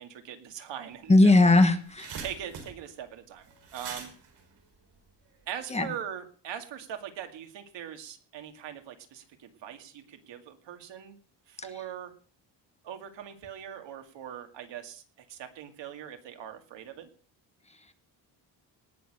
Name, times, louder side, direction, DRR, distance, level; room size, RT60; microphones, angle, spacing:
voice 1, 0.0-1.3 2.2-4.1 5.5-11.2 11.5-12.1 12.8-15.0 15.3-17.1, right 9 dB, 85° right, 6 dB, 2.3 m, -41 dB
sound 1, 0.9-1.0 1.3-5.5, right 5 dB, 70° right, 5.0 m, -44 dB
voice 2, 1.1-2.1 5.7-5.9 11.6-11.7, left 2 dB, 15° left, 9 dB, 1.3 m, -19 dB
19.0 x 6.6 x 6.5 m, 0.43 s
cardioid pair, 130°, 42 cm